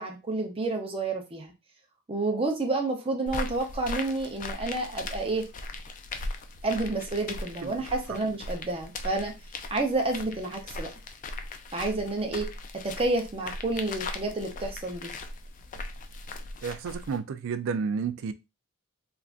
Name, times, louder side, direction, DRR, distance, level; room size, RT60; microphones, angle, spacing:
voice 1, 0.0-1.5 2.1-5.4 6.6-9.3 9.7-10.9 11.7-12.5 12.8-15.1, right 2 dB, 25° right, 0.6 m, -29 dB
sound 1, 3.3-17.2, left 2 dB, 35° left, 0.3 m, -39 dB
voice 2, 16.6-18.3, right 5 dB, 60° right, 0.3 m, -31 dB
3.4 x 2.5 x 2.4 m
head